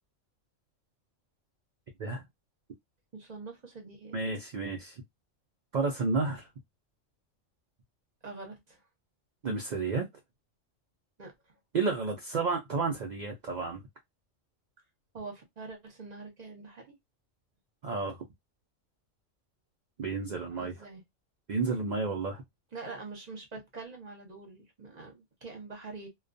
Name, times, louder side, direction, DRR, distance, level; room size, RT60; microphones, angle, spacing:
voice 1, 3.1-4.2 8.2-8.8 11.2-11.6 15.1-16.9 20.5-21.0 22.7-26.1, right 3 dB, 40° right, 0.8 m, -45 dB
voice 2, 4.1-5.0 5.7-6.5 9.4-10.1 11.7-13.8 17.8-18.2 20.0-20.7 21.5-22.4, right 4 dB, 65° right, 0.4 m, -31 dB
2.3 x 2.2 x 2.5 m
omnidirectional pair, 1.3 m